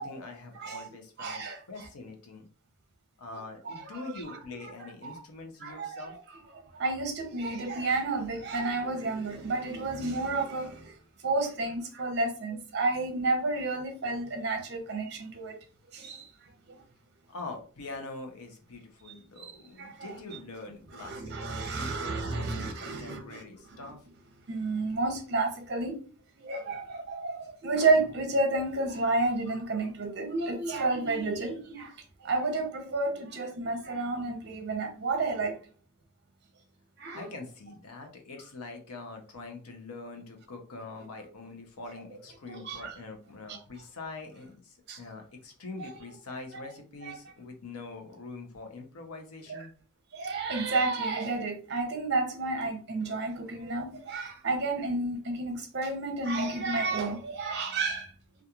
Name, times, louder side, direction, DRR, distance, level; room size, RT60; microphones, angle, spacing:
voice 1, 0.0-2.5 3.2-6.1 17.3-24.0 37.1-49.7, left 3 dB, 85° left, 0.7 m, -44 dB
voice 2, 0.6-0.9 1.2-1.9 3.6-4.4 5.0-5.2 5.6-6.2 6.5-10.9 11.2-15.6 15.9-16.3 16.7-16.8 19.4-20.1 20.9-23.4 23.7-23.8 24.5-26.0 26.4-32.0 32.2-35.6 37.0-37.3 42.5-42.9 43.5-43.6 44.9-45.0 45.8-45.9 46.5-46.6 47.0-47.2 49.5-49.6 50.1-58.1, right 3 dB, 50° right, 0.6 m, -31 dB
2.8 x 2.4 x 2.3 m
head